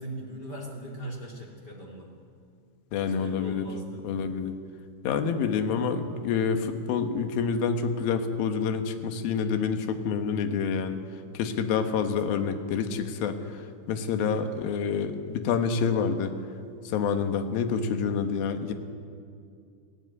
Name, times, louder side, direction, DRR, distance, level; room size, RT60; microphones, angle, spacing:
voice 1, 0.0-2.1 3.0-4.0, right 1 dB, 30° left, -1 dB, 2.1 m, -40 dB
voice 2, 2.9-3.7 4.0-4.6 5.0-11.0 11.3-13.6 13.9-16.3 16.8-18.7, left 6 dB, 70° left, 7 dB, 2.4 m, -27 dB
22.5 x 15.0 x 9.8 m, 2.3 s
omnidirectional pair, 5.7 m